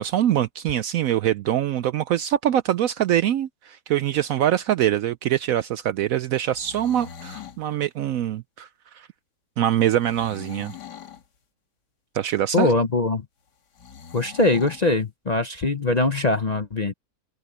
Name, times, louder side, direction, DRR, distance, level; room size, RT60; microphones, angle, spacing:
voice 1, 0.0-8.7 8.9-9.1 9.6-10.7 12.1-12.7, right 11 dB, 70° right, 0.8 m, -23 dB
sound 1, 6.4-7.6 10.0-11.3 13.8-14.9, left 8 dB, 80° left, 2.2 m, -42 dB
voice 2, 12.5-13.2 14.1-16.9, left 2 dB, 35° left, 0.6 m, -22 dB
open air
omnidirectional pair, 1.8 m